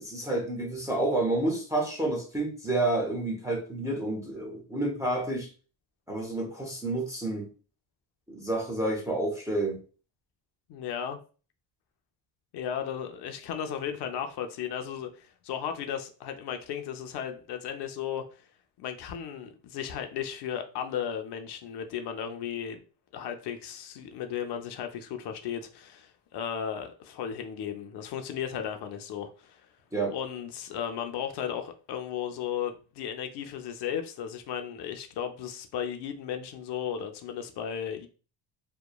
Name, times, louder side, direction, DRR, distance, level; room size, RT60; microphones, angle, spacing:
voice 1, 0.0-5.5 6.1-7.5 8.3-9.8 29.9-30.1, right 2 dB, 5° right, 0.4 m, -29 dB
voice 2, 10.7-11.2 12.5-18.4 18.8-22.8 23.1-29.6 30.1-38.1, left 8 dB, 60° left, 0.5 m, -35 dB
2.9 x 2.1 x 2.2 m
cardioid pair, 150°, 46 cm